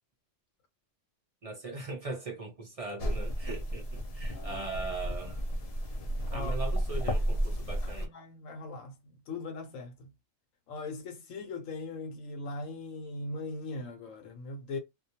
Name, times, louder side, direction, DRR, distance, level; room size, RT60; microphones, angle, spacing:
voice 1, 1.4-5.4 6.3-8.1, right 3 dB, 55° right, 0.4 m, -40 dB
sound 1, 3.0-8.1, equal, 55° left, 0.4 m, -32 dB
voice 2, 4.2-4.7 6.3-6.5 7.8-10.1 10.7-14.8, left 3 dB, 85° left, 1.0 m, -40 dB
2.3 x 2.1 x 2.7 m
omnidirectional pair, 1.3 m